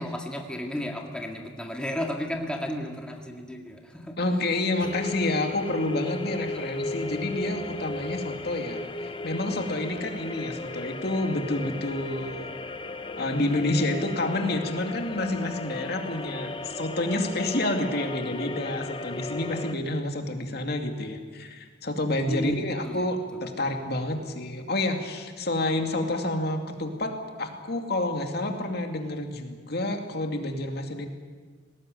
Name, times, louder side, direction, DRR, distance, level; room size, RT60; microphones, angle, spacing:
voice 1, 0.0-4.1 6.5-6.6 22.3-23.1, equal, 5° left, 1 dB, 1.9 m, -33 dB
voice 2, 4.2-12.5 13.2-31.1, left 1 dB, 55° left, 4 dB, 2.4 m, -29 dB
sound 1, 4.8-19.7, left 2 dB, 25° left, 0.9 m, -36 dB
20.0 x 18.5 x 9.3 m, 1.5 s
head